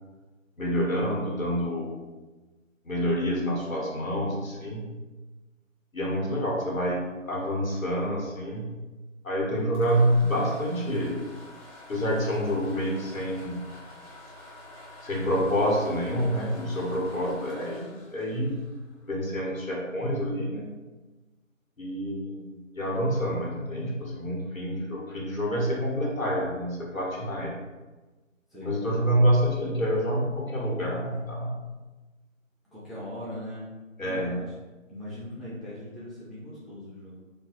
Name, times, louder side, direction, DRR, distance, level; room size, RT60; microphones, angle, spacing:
voice 1, 0.6-2.0 2.8-4.9 5.9-8.7 9.2-11.2 11.9-13.6 15.0-18.6 19.1-20.7 21.8-27.5 28.6-31.5 34.0-34.4, equal, 90° left, -3 dB, 1.3 m, -27 dB
sound 1, 9.6-19.4, left 1 dB, 30° left, 0.9 m, -48 dB
voice 2, 32.7-33.8 34.0-34.5 34.9-37.2, left 1 dB, ahead, -9 dB, 0.4 m, -40 dB
3.7 x 2.3 x 2.9 m, 1.2 s
figure-of-eight pair, 160°, 40 cm